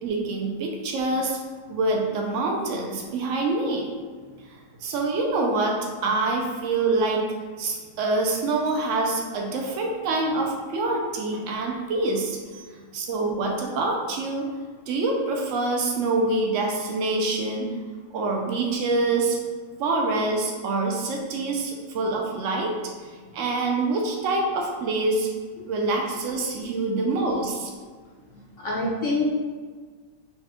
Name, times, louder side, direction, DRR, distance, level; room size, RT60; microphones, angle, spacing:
voice 1, 0.0-1.4 1.7-3.8 4.8-7.3 7.6-12.6 12.9-14.5 14.9-17.7 18.1-19.4 19.8-22.7 23.0-25.3 25.7-27.7, right 3 dB, 80° right, 0 dB, 0.6 m, -25 dB
voice 2, 28.3-29.3, left 2 dB, 70° left, -4 dB, 0.7 m, -27 dB
4.1 x 2.3 x 3.5 m, 1.5 s
omnidirectional pair, 1.8 m